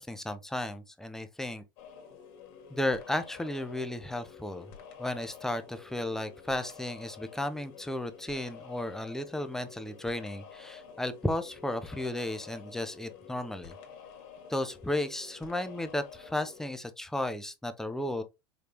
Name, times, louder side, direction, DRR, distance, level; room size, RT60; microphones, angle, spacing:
voice 1, 0.0-1.6 2.7-4.7 5.0-13.7 14.5-18.2, left 1 dB, 5° left, 0.6 m, -34 dB
sound 1, 1.8-16.7, left 7 dB, 55° left, 1.6 m, -50 dB
5.1 x 3.3 x 2.9 m
supercardioid pair, 130°, 12 cm